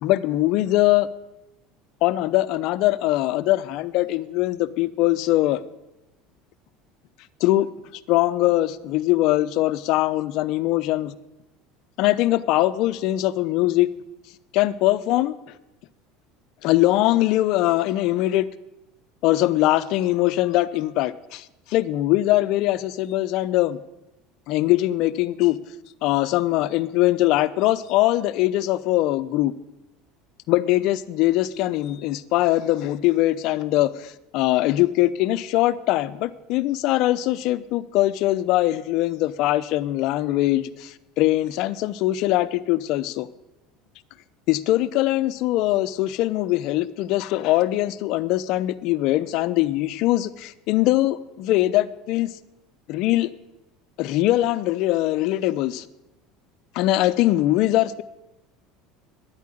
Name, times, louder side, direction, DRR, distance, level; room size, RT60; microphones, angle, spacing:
voice 1, 0.0-1.1 2.0-5.6 7.4-7.7 8.1-11.2 12.0-13.9 14.5-15.3 16.6-18.5 19.2-23.8 24.5-25.6 26.0-29.5 30.5-43.3 44.5-52.3 52.9-53.3 54.0-55.8 56.7-58.0, left 16 dB, 65° left, 15 dB, 0.7 m, -22 dB
10.5 x 8.4 x 9.9 m, 0.96 s
hypercardioid pair, 90°, 0 cm